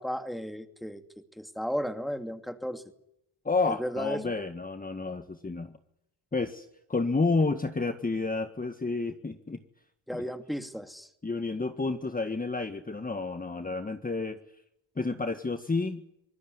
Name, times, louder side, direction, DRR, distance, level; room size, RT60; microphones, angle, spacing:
voice 1, 0.0-2.8 3.7-4.3 10.1-11.1, equal, ahead, 8 dB, 2.7 m, -34 dB
voice 2, 3.5-5.8 6.3-9.6 10.1-10.2 11.2-14.4 15.0-16.0, left 3 dB, 15° left, 8 dB, 1.8 m, -30 dB
25.5 x 19.0 x 9.7 m, 0.80 s
cardioid pair, 85°, 49 cm